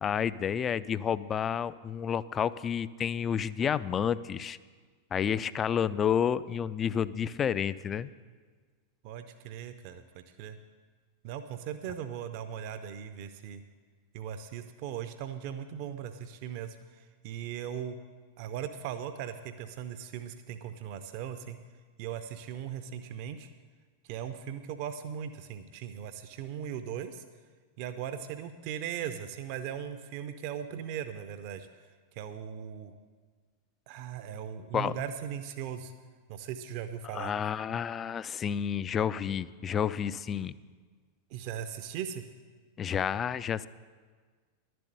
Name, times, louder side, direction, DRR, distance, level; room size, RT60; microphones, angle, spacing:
voice 1, 0.0-4.6 5.1-8.1 34.7-35.0 37.1-40.5 42.8-43.7, left 8 dB, 25° left, 17 dB, 0.3 m, -30 dB
voice 2, 9.0-10.6 11.2-13.6 14.1-18.0 18.4-21.6 22.0-23.5 24.0-27.2 27.8-31.7 32.1-32.9 33.9-35.9 36.3-37.3 41.3-42.2, right 9 dB, 45° right, 10 dB, 0.6 m, -39 dB
11.5 x 7.7 x 7.8 m, 1.5 s
figure-of-eight pair, 90°, 0 cm